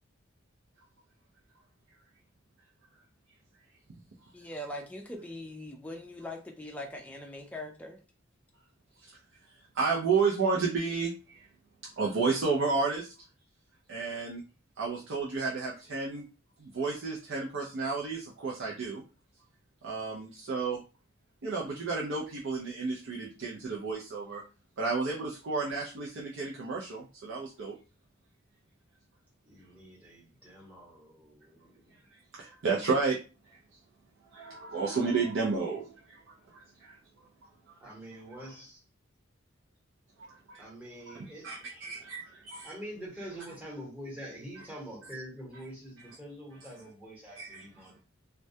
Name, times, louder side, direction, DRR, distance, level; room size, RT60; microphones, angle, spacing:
voice 1, 4.3-8.0, left 1 dB, 5° left, 0.4 m, -41 dB
voice 2, 9.7-11.5 12.0-13.1 13.9-14.4 14.8-16.2 16.6-19.0 19.8-20.8 21.4-24.4 24.8-27.8 32.4-33.2 34.3-37.0 40.3-40.6 41.1-41.2 41.4-42.7 47.4-47.6, right 4 dB, 70° right, 0.5 m, -32 dB
voice 3, 29.4-32.1 37.8-38.8 40.6-41.9 42.6-48.0, equal, 10° right, 0.9 m, -45 dB
2.2 x 2.1 x 2.6 m
head